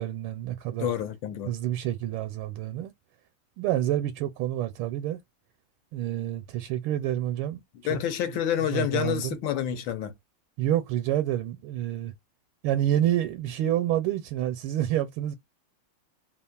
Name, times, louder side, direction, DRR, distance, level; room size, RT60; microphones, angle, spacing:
voice 1, 0.0-0.9 1.5-2.9 3.6-5.2 5.9-7.6 7.9-8.0 8.3-9.4 10.6-12.1 12.6-15.4, right 12 dB, 80° right, 1.4 m, -28 dB
voice 2, 0.8-1.5 7.8-10.1, left 10 dB, 70° left, 1.3 m, -28 dB
3.4 x 2.4 x 2.2 m
omnidirectional pair, 2.3 m